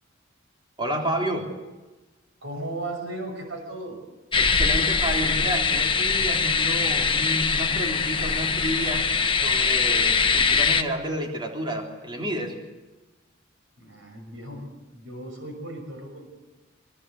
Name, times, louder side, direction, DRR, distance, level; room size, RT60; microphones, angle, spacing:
voice 1, 0.8-1.5 4.4-9.2 9.4-12.6, right 1 dB, 25° right, 1 dB, 3.7 m, -30 dB
voice 2, 2.4-4.0 13.8-16.3, right 1 dB, 70° right, 3 dB, 6.1 m, -36 dB
sound 1, 4.3-10.8, left 5 dB, 25° left, 1.3 m, -22 dB
24.5 x 21.5 x 8.3 m, 1.1 s
head